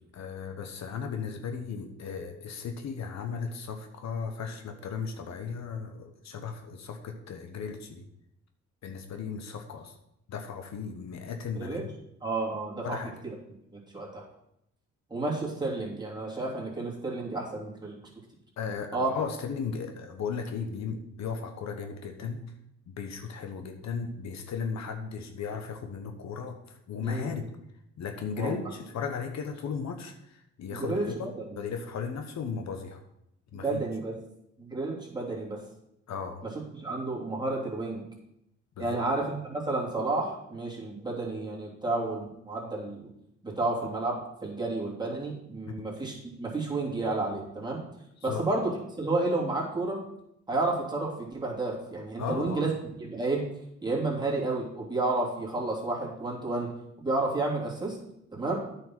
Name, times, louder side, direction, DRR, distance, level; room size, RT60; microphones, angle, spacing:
voice 1, 0.1-8.1 8.8-9.9 10.3-12.0 12.8-13.1 18.6-22.5 22.9-27.4 28.0-31.3 31.6-33.0 33.5-33.8 36.1-36.4 38.8-39.0 45.7-45.9 48.2-48.4 52.2-52.7, left 6 dB, 65° left, 6 dB, 1.1 m, -36 dB
voice 2, 12.2-13.0 13.2-13.3 13.7-14.2 15.1-18.0 18.9-19.1 27.0-27.3 28.4-28.6 30.7-31.6 33.5-34.2 34.6-35.6 36.4-38.0 38.8-43.0 43.4-47.8 48.2-50.0 50.5-53.5 53.8-56.7 57.0-58.0 58.3-58.6, right 2 dB, 15° right, -4 dB, 3.0 m, -31 dB
9.1 x 5.6 x 6.0 m, 0.81 s
cardioid pair, 90°, 30 cm